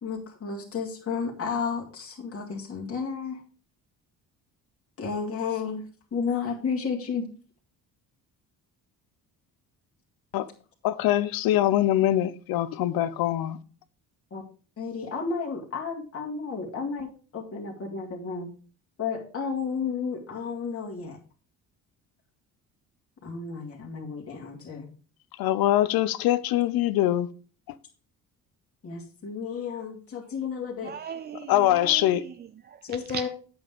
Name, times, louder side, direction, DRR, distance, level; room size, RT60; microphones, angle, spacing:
voice 1, 0.0-3.4 5.0-5.8 6.1-7.3 14.3-14.4 14.8-18.5 19.0-21.2 23.2-24.9 28.8-30.9 32.8-33.3, left 5 dB, 40° left, 2.4 m, -32 dB
voice 2, 10.8-13.6 25.4-27.3 31.5-32.2, left 13 dB, 80° left, 0.8 m, -23 dB
voice 3, 30.8-33.3, right 7 dB, 30° right, 0.4 m, -39 dB
9.3 x 8.0 x 3.6 m
cardioid pair, 120°, 35 cm